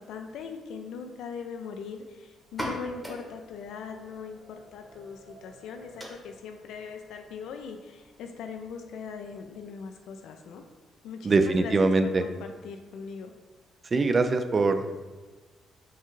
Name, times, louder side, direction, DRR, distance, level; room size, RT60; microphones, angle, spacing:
voice 1, 0.0-10.6 11.0-11.7 12.0-12.3 12.6-13.3, left 6 dB, 85° left, 5 dB, 0.3 m, -40 dB
sound 1, 2.4-9.9, equal, ahead, 1.0 m, -44 dB
voice 2, 11.2-12.2 13.9-15.0, right 3 dB, 35° right, 8 dB, 0.3 m, -23 dB
5.6 x 2.3 x 3.1 m, 1.3 s
cardioid pair, 90°, 0 cm